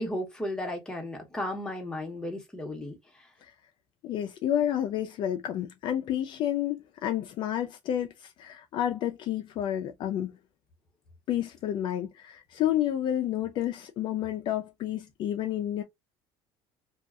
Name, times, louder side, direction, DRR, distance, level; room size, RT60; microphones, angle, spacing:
voice 1, 0.0-3.3, left 1 dB, 5° left, 0.9 m, -34 dB
voice 2, 4.0-10.4 11.3-15.8, left 11 dB, 50° left, 0.3 m, -30 dB
2.7 x 2.3 x 2.3 m
cardioid pair, 140°, 11 cm